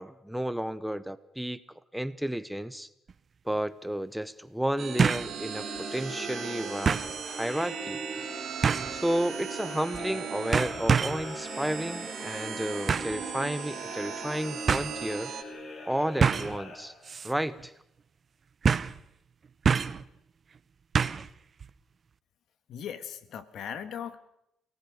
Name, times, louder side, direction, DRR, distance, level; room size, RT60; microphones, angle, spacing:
voice 1, 0.0-1.6 1.9-2.9 3.4-5.6 5.9-8.0 8.9-15.3 15.9-16.9 17.2-17.7, equal, 5° right, 14 dB, 1.0 m, -32 dB
sound 1, 3.1-3.2 5.0-5.3 5.8-5.9 6.9-7.1 8.6-9.0 9.9-10.2 10.5-11.3 12.9-13.2 14.2-14.3 14.7-14.9 16.2-16.6 17.1-17.3 17.6-17.7 18.6-19.0 19.7-20.0 21.0-21.3 21.6-21.7, right 6 dB, 45° right, 0.9 m, -26 dB
sound 2, 4.8-15.4, right 8 dB, 65° right, 2.7 m, -38 dB
sound 3, 5.1-17.4, left 2 dB, 55° left, 3.3 m, -43 dB
voice 2, 22.7-24.2, left 8 dB, 70° left, 12 dB, 1.8 m, -38 dB
29.0 x 18.5 x 6.5 m, 0.79 s
cardioid pair, 90°, 0 cm